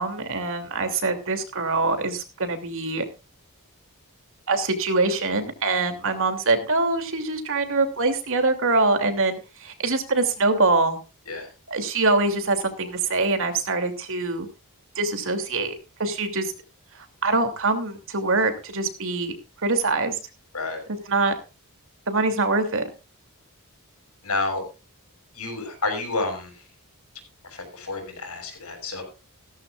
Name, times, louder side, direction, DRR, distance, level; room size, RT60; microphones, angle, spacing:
voice 1, 0.0-3.0 4.5-11.0 11.7-14.5 15.0-15.7 16.0-16.5 17.2-19.3 19.6-20.2 20.9-21.3 22.1-22.9, right 3 dB, 65° right, 7 dB, 2.9 m, -24 dB
voice 2, 24.2-24.6 25.3-26.6 27.5-29.0, left 3 dB, 80° left, 5 dB, 6.4 m, -29 dB
16.5 x 14.0 x 2.5 m, 0.31 s
head